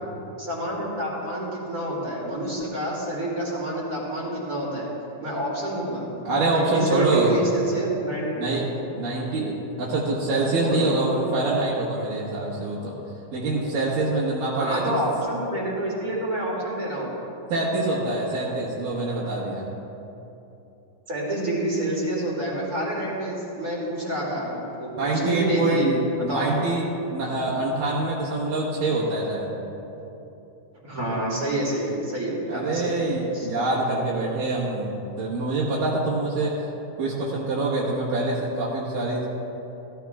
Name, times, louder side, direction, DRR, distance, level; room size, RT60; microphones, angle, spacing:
voice 1, 0.4-4.9 5.2-6.0 6.5-8.4 10.6-11.3 14.6-17.2 21.1-25.9 26.2-26.4 30.8-33.0 33.3-33.5, right 1 dB, 30° right, -5 dB, 2.5 m, -28 dB
voice 2, 6.2-7.4 8.4-8.7 8.9-12.9 13.3-15.0 17.5-19.7 24.9-26.8 27.1-29.5 32.5-36.6 37.0-39.3, right 2 dB, 80° right, -8 dB, 3.2 m, -25 dB
17.0 x 13.0 x 2.4 m, 2.9 s
omnidirectional pair, 3.8 m